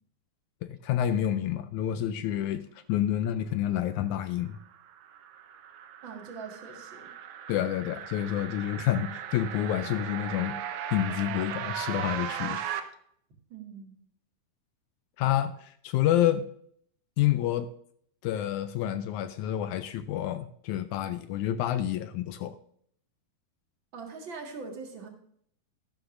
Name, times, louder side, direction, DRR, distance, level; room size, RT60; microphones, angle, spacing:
voice 1, 0.7-4.6 7.5-10.6 10.9-12.6 15.2-16.4 17.2-17.7 18.2-22.6, left 11 dB, 80° left, 11 dB, 1.8 m, -28 dB
sound 1, 4.5-12.8, right 9 dB, 80° right, 2.4 m, -37 dB
voice 2, 6.0-7.1 13.5-14.0 23.9-25.1, right 4 dB, 40° right, 1 dB, 2.1 m, -42 dB
13.0 x 12.0 x 2.6 m, 0.65 s
omnidirectional pair, 3.8 m